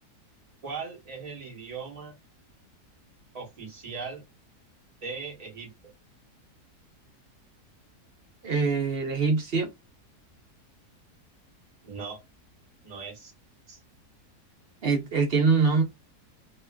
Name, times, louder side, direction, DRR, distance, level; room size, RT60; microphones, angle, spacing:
voice 1, 0.6-2.2 3.3-4.2 5.0-5.7 11.8-12.2 12.8-13.3 13.7-13.8, right 5 dB, 30° right, 0.9 m, -39 dB
voice 2, 8.4-9.7 14.8-15.8, right 4 dB, 55° right, 0.7 m, -23 dB
2.9 x 2.4 x 2.2 m
omnidirectional pair, 1.7 m